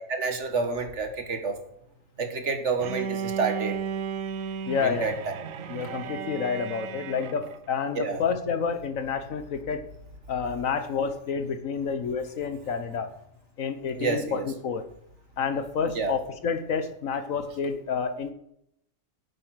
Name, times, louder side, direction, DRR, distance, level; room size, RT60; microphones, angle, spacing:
voice 1, 0.1-1.6 2.2-3.8 4.8-5.1 8.0-8.2 13.9-14.5 16.0-16.1, right 4 dB, 60° right, 6 dB, 1.8 m, -28 dB
Bowed string instrument, 2.8-7.7, right 7 dB, 85° right, 1.2 m, -34 dB
voice 2, 4.7-5.2 5.7-9.8 10.3-13.1 13.6-14.8 15.4-18.3, left 6 dB, 85° left, 10 dB, 1.5 m, -29 dB
8.8 x 8.5 x 6.3 m, 0.75 s
omnidirectional pair, 1.3 m